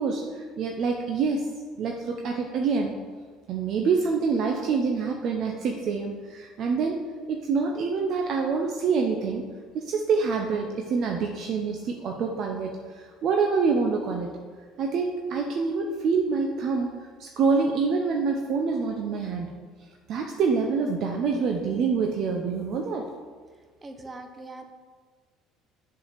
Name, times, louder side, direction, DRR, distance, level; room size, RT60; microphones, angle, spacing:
voice 1, 0.0-1.5 1.8-2.9 3.5-7.0 7.3-9.4 9.7-14.3 14.8-16.9 17.2-19.5 20.1-23.0, right 5 dB, 55° right, 2 dB, 0.8 m, -26 dB
voice 2, 23.8-24.6, right 2 dB, 25° right, 6 dB, 1.1 m, -41 dB
7.0 x 4.7 x 6.6 m, 1.5 s
hypercardioid pair, 65°, 0 cm